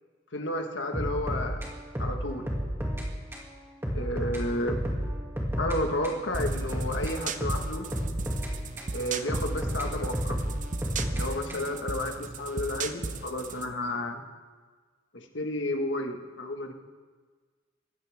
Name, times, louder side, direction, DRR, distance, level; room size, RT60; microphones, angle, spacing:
voice 1, 0.3-1.6 2.0-2.5 3.9-4.8 5.6-7.9 8.9-10.4 11.1-14.2 15.1-16.7, left 1 dB, 85° left, 3 dB, 1.7 m, -32 dB
sound 1, 0.9-3.1 3.3-3.5 3.8-5.8 6.0-8.9 9.3-11.8, equal, 15° right, 2.5 m, -32 dB
sound 2, 6.3-13.7, right 4 dB, 45° right, 0.8 m, -36 dB
20.5 x 15.5 x 3.7 m, 1.5 s
head